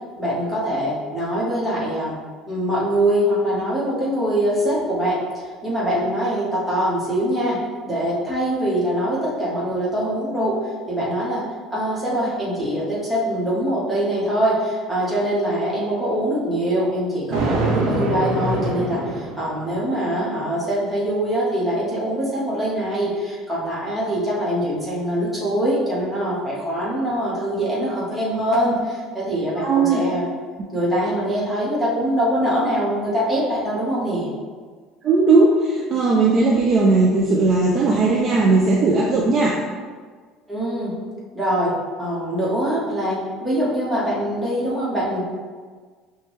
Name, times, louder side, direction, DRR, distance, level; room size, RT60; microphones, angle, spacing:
voice 1, 0.2-2.2 2.5-7.6 7.9-30.2 30.7-34.3 40.5-40.9 41.3-41.7 42.0-45.2, equal, 5° right, -8 dB, 1.0 m, -23 dB
Thunder, 17.3-19.8, right 2 dB, 65° right, 0.7 m, -24 dB
voice 2, 29.6-30.0 35.0-39.6, right 3 dB, 30° right, -2 dB, 0.3 m, -17 dB
5.7 x 2.2 x 3.0 m, 1.5 s
cardioid pair, 175°, 0 cm